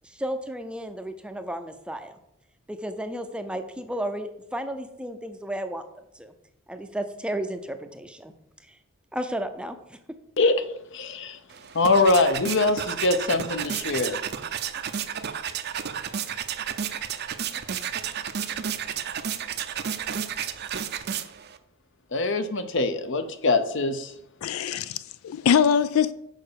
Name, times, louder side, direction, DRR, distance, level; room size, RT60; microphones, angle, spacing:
voice 1, 0.0-2.2 2.7-5.8 6.1-6.3 6.7-8.3 8.7-8.8 9.1-10.0, right 1 dB, 5° right, 0.5 m, -33 dB
voice 2, 10.9-11.4 11.7-14.2 22.1-24.1, left 3 dB, 60° left, 0.8 m, -23 dB
sound 1, 11.5-21.6, right 8 dB, 50° right, 0.5 m, -32 dB
voice 3, 24.4-26.1, left 7 dB, 80° left, 0.3 m, -23 dB
6.5 x 5.2 x 6.7 m
head